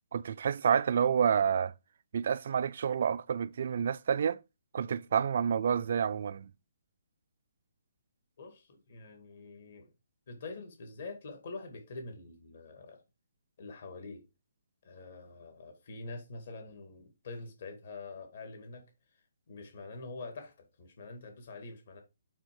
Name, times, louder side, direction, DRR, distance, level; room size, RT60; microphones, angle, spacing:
voice 1, 0.1-1.7 2.1-4.4 4.7-6.5, right 7 dB, 55° right, 0.4 m, -29 dB
voice 2, 8.4-9.9 10.3-13.0 13.6-14.2 14.8-18.9 19.5-22.0, left 3 dB, 55° left, 2.1 m, -45 dB
8.8 x 3.4 x 4.8 m
hypercardioid pair, 165°, 0 cm